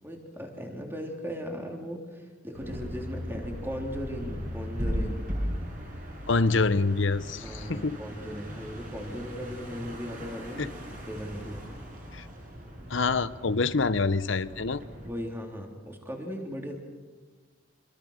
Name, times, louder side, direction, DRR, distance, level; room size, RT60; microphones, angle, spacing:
voice 1, 0.0-5.3 7.4-11.6 15.0-16.8, equal, 10° right, 1 dB, 3.3 m, -38 dB
sound 1, 2.5-15.1, equal, 40° right, 7.6 m, -38 dB
voice 2, 6.3-8.0 10.6-10.7 12.1-12.3 12.9-14.8, left 3 dB, 60° left, 14 dB, 0.8 m, -26 dB
26.5 x 24.0 x 6.5 m, 1.4 s
head